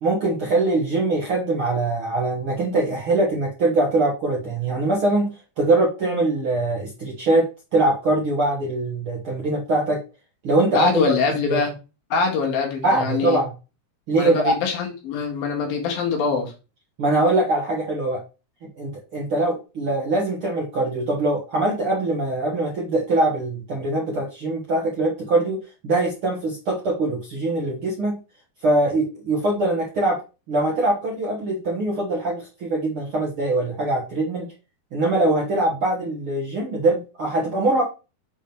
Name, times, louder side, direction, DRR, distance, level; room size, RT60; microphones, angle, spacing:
voice 1, 0.0-10.0 10.4-10.9 11.4-11.6 12.8-13.5 14.1-14.5 17.0-18.2 18.8-28.2 28.6-30.2 30.5-34.5 34.9-37.8, right 2 dB, 55° right, -2 dB, 1.5 m, -22 dB
voice 2, 10.7-11.7 12.1-13.4 14.1-16.5, left 5 dB, 75° left, 1 dB, 3.4 m, -23 dB
7.1 x 3.7 x 4.4 m, 0.31 s
omnidirectional pair, 4.3 m